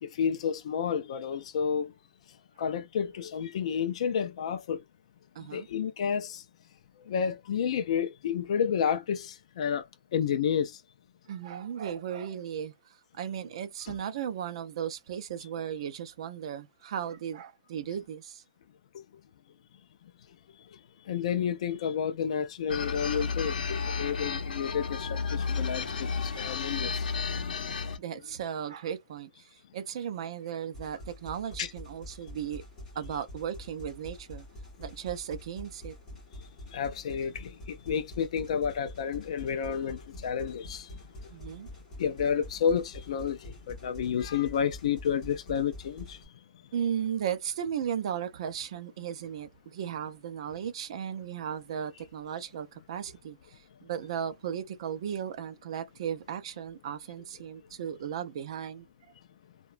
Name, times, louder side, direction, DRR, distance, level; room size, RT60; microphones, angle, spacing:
voice 1, 0.0-1.9 2.6-4.8 5.5-6.4 7.1-9.8 10.1-10.7 21.1-23.6 24.0-26.9 27.5-27.7 31.6-31.7 36.7-40.9 42.0-46.2, left 7 dB, 45° left, 0.3 m, -30 dB
voice 2, 5.4-5.7 11.3-12.7 13.1-18.4 27.7-32.6 32.9-34.5 34.8-36.0 41.3-41.7 46.7-58.9, right 8 dB, 40° right, 0.4 m, -36 dB
sound 1, 22.7-28.0, left 5 dB, 80° left, 0.6 m, -32 dB
sound 2, 30.7-46.2, left 1 dB, 10° left, 1.1 m, -46 dB
2.8 x 2.2 x 2.4 m
hypercardioid pair, 175°, 5 cm